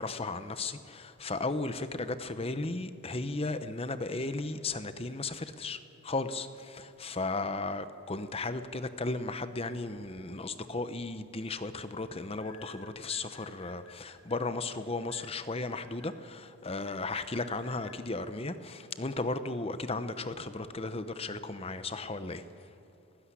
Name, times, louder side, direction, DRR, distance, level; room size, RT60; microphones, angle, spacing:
voice 1, 0.0-22.4, left 3 dB, 25° left, 11 dB, 0.8 m, -35 dB
sound 1, 12.4-14.4 15.1-16.1 16.9-18.0, left 5 dB, 80° left, 2.6 m, -54 dB
18.5 x 16.0 x 9.7 m, 2.9 s
head